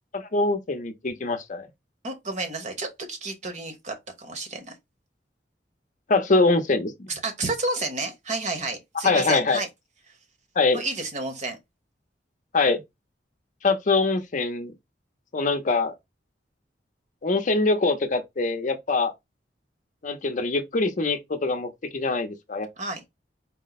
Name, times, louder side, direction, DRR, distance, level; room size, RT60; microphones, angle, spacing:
voice 1, 0.1-1.7 6.1-7.1 9.0-9.6 10.6-10.8 12.5-12.8 13.6-14.7 15.3-15.9 17.2-19.1 20.0-22.7, left 3 dB, 45° left, 0.6 m, -23 dB
voice 2, 2.0-4.7 7.1-9.7 10.7-11.6 22.8-23.1, right 3 dB, 40° right, 1.1 m, -31 dB
4.4 x 2.1 x 4.0 m
head